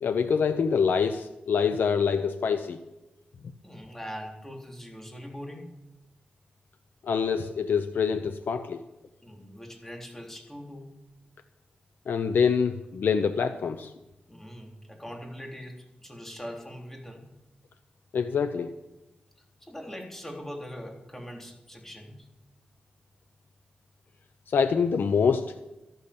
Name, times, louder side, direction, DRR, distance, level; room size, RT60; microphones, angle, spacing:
voice 1, 0.0-2.8 7.0-8.8 12.1-13.9 18.1-18.7 24.5-25.5, left 6 dB, 85° left, 9 dB, 0.8 m, -25 dB
voice 2, 3.6-5.7 9.2-10.9 14.3-17.2 19.6-22.3, equal, 10° left, 1 dB, 3.6 m, -41 dB
13.5 x 12.0 x 7.0 m, 0.97 s
cardioid pair, 70°, 3 cm